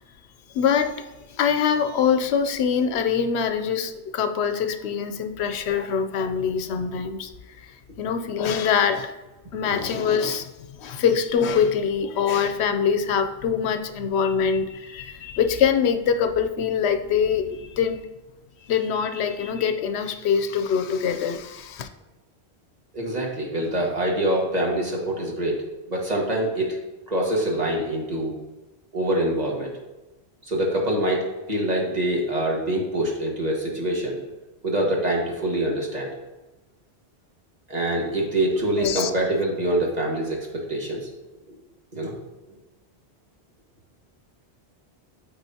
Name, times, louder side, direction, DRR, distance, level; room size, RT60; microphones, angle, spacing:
voice 1, 0.5-7.3 7.6-9.1 9.5-18.0 18.7-21.9 38.8-39.1, left 7 dB, 85° left, 8 dB, 0.9 m, -24 dB
voice 2, 22.9-25.6 25.9-26.8 27.1-28.4 28.9-29.7 30.4-34.2 34.6-36.1 37.7-41.1 41.9-42.1, right 1 dB, 40° right, -2 dB, 1.6 m, -25 dB
12.5 x 4.2 x 2.8 m, 1.1 s
omnidirectional pair, 1.1 m